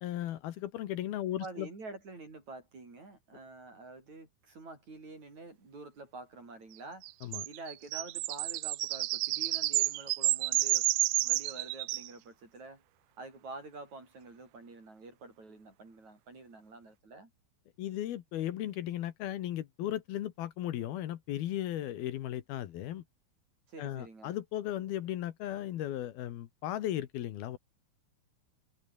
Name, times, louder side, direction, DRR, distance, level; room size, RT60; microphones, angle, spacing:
voice 1, 0.0-1.7 7.2-7.5 17.8-23.0 23.8-27.6, left 12 dB, 75° left, 3.2 m, -36 dB
voice 2, 1.4-7.1 7.5-10.9 11.2-12.8 13.2-17.3 23.7-24.3, right 3 dB, 45° right, 7.6 m, -48 dB
sound 1, 7.0-12.1, right 19 dB, 80° right, 2.4 m, -30 dB
omnidirectional pair, 4.6 m